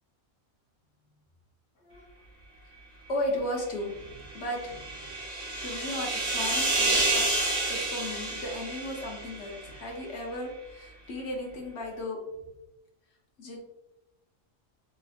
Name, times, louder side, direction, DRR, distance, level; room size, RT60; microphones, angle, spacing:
voice 1, 1.8-2.1 3.1-5.1 5.6-12.2 13.4-13.6, left 1 dB, 60° left, 0 dB, 1.1 m, -35 dB
sound 1, 4.1-9.7, right 2 dB, 60° right, 1.2 m, -29 dB
3.8 x 3.0 x 2.5 m, 0.91 s
omnidirectional pair, 1.4 m